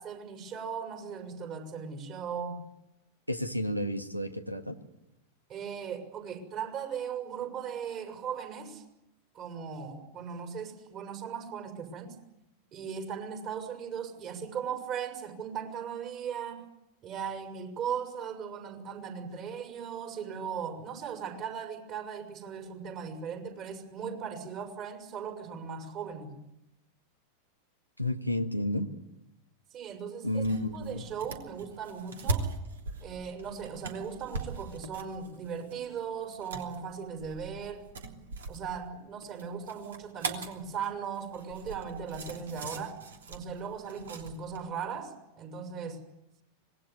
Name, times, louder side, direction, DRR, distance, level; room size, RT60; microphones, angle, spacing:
voice 1, 0.0-2.6 5.5-8.8 9.3-12.2 12.7-16.6 17.0-26.3 29.7-30.4 30.7-32.5 33.0-37.8 38.5-43.0 43.3-46.0, right 7 dB, 35° right, 4 dB, 6.1 m, -38 dB
voice 2, 3.3-4.8 28.0-28.9 30.2-31.0, left 1 dB, 90° right, 9 dB, 1.9 m, -31 dB
sound 1, 30.2-44.6, right 3 dB, 65° right, 3.1 m, -40 dB
25.5 x 20.5 x 9.8 m, 0.89 s
figure-of-eight pair, 90°, 0 cm